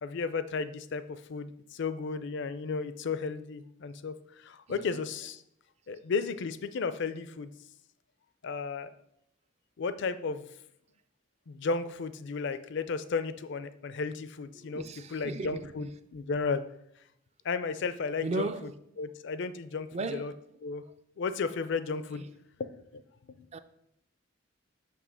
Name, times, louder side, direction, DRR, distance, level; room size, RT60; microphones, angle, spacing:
voice 1, 0.0-5.4 5.9-7.5 8.4-8.9 9.8-10.5 11.5-14.8 15.1-16.6 17.4-18.5 19.0-20.3 20.6-20.8 21.2-22.2 22.6-23.0 23.3-23.5, left 4 dB, 60° left, 0.4 m, -34 dB
voice 2, 4.7-5.1 14.5-15.9 18.2-18.8 19.9-20.3 22.1-22.3 23.5-23.6, right 3 dB, 35° right, 0.4 m, -36 dB
7.1 x 3.2 x 6.1 m
head